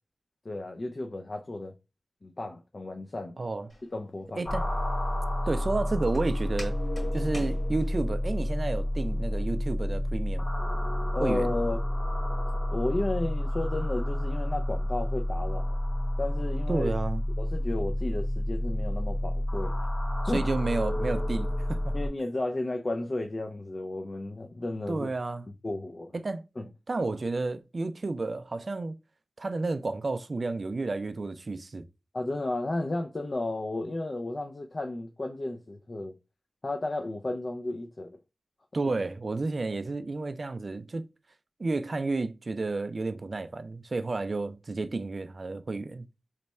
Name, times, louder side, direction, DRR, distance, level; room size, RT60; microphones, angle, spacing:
voice 1, 0.4-1.7 2.2-3.4 3.9-4.5 11.1-11.8 12.7-15.7 16.2-16.9 17.4-19.9 20.3-20.4 21.9-25.1 25.6-26.1 26.6-26.7 32.1-36.1 36.6-38.1 38.8-38.9, left 2 dB, 45° left, 0.4 m, -33 dB
voice 2, 3.4-3.7 4.4-4.7 5.5-6.7 7.1-10.5 11.2-11.5 16.7-17.2 20.2-21.9 24.9-25.5 26.1-26.4 26.9-29.0 29.4-31.8 38.7-41.1 41.6-46.1, right 3 dB, 50° right, 0.3 m, -31 dB
Walk footsteps, 3.7-8.3, left 1 dB, 25° left, 1.8 m, -47 dB
sound 1, 4.5-22.1, left 1 dB, 65° left, 1.6 m, -29 dB
3.2 x 2.2 x 4.1 m
wide cardioid pair, 65°, 0 cm